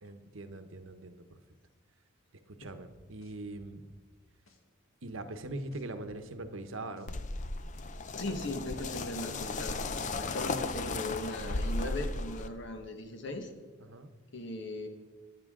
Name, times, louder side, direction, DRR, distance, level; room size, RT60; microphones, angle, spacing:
voice 1, 0.0-1.4 2.5-3.8 5.0-7.1 13.8-14.1, right 2 dB, 70° right, 9 dB, 1.0 m, -42 dB
sound 1, 2.6-4.0 4.5-4.6 5.1-6.5 7.0-7.1 7.4-9.0 9.5-9.6 10.1-11.5 12.0-12.1, equal, 80° left, 1.7 m, -60 dB
sound 2, 7.1-12.5, left 3 dB, 35° left, 0.6 m, -35 dB
voice 2, 8.2-9.8 10.2-13.5 14.3-14.9, left 1 dB, 60° left, 5 dB, 1.4 m, -38 dB
20.0 x 9.2 x 3.7 m, 1.3 s
head